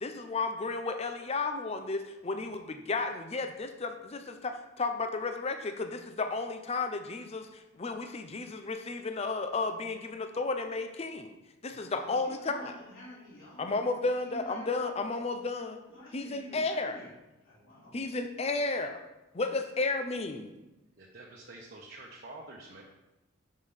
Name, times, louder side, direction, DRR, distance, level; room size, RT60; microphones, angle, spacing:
voice 1, 0.0-11.3 11.6-12.7 13.6-15.8 16.1-17.0 17.9-19.0 19.3-20.5, left 3 dB, 30° left, 7 dB, 0.5 m, -33 dB
voice 2, 11.7-13.8 14.1-14.8 15.9-17.1 17.4-18.0, left 1 dB, 90° left, -7 dB, 3.1 m, -49 dB
voice 3, 21.0-22.8, right 2 dB, 50° right, -3 dB, 1.1 m, -47 dB
6.3 x 5.3 x 5.6 m, 0.98 s
head